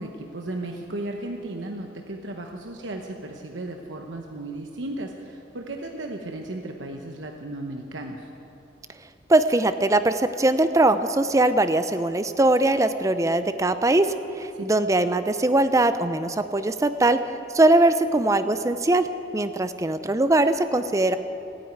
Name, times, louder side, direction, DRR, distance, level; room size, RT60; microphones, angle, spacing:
voice 1, 0.0-8.3 14.5-14.6, right 2 dB, 75° right, 2 dB, 1.0 m, -35 dB
voice 2, 9.3-17.2 17.5-19.1 19.3-21.2, right 2 dB, 15° right, 11 dB, 0.4 m, -21 dB
16.0 x 9.7 x 9.4 m, 2.9 s
head